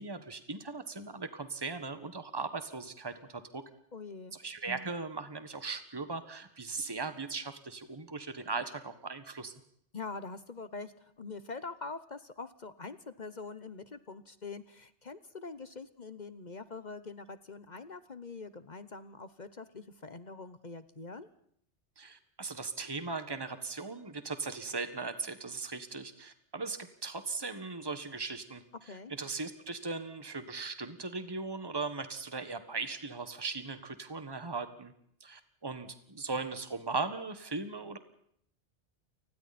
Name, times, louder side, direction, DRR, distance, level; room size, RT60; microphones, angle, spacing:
voice 1, 0.0-3.6 4.3-9.5 22.0-34.9 35.2-38.0, right 4 dB, 20° right, 10 dB, 1.6 m, -38 dB
voice 2, 3.9-4.4 9.9-21.3 28.9-29.1, left 4 dB, 40° left, 13 dB, 1.1 m, -44 dB
29.5 x 20.5 x 4.3 m, 0.67 s
omnidirectional pair, 1.2 m